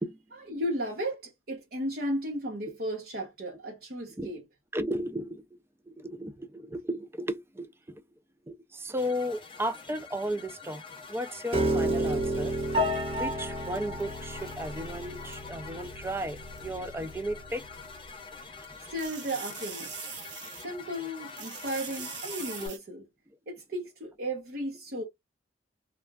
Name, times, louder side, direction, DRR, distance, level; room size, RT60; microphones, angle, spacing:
voice 1, 0.5-4.4 18.9-20.0 20.6-23.0 23.5-25.0, equal, 60° right, 0.9 m, -34 dB
voice 2, 4.7-5.6 5.9-8.0 8.5-10.8 11.1-12.5 13.2-17.9 18.8-18.9 22.6-22.7, equal, 15° right, 0.4 m, -35 dB
sound 1, 9.0-22.7, left 5 dB, 30° left, 0.7 m, -46 dB
Piano, 11.5-17.7, right 1 dB, 35° right, 1.1 m, -31 dB
sound 2, 13.7-15.5 16.6-16.7 18.6-21.0 21.3-22.8, right 7 dB, 85° right, 1.1 m, -43 dB
3.3 x 2.3 x 2.2 m
head